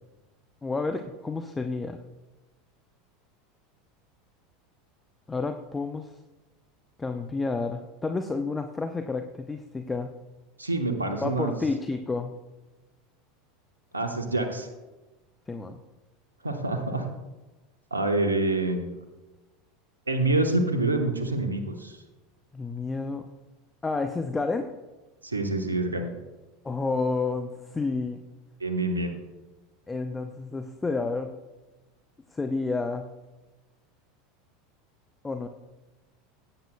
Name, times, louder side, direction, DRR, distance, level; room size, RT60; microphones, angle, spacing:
voice 1, 0.6-2.0 5.3-6.2 7.0-10.1 11.2-12.3 15.5-15.8 22.5-23.3 23.8-24.7 26.6-28.2 29.9-31.3 32.3-33.1 35.2-35.5, left 3 dB, 15° left, 7 dB, 0.6 m, -30 dB
voice 2, 10.6-11.6 13.9-14.7 16.4-17.1 17.9-18.9 20.1-22.0 25.2-26.1 28.6-29.1, right 2 dB, 85° right, 5 dB, 1.0 m, -26 dB
16.0 x 8.9 x 2.2 m, 1.1 s
figure-of-eight pair, 80°, 0 cm